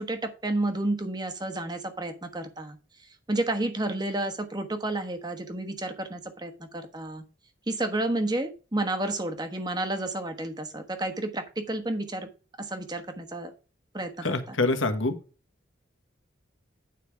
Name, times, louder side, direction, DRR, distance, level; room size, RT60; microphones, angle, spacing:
voice 1, 0.0-2.8 3.3-7.2 7.7-12.3 12.6-13.5 13.9-14.5, right 2 dB, 20° right, 6 dB, 1.2 m, -31 dB
voice 2, 14.2-15.1, left 2 dB, 85° left, 7 dB, 1.5 m, -25 dB
9.6 x 5.1 x 4.8 m, 0.34 s
head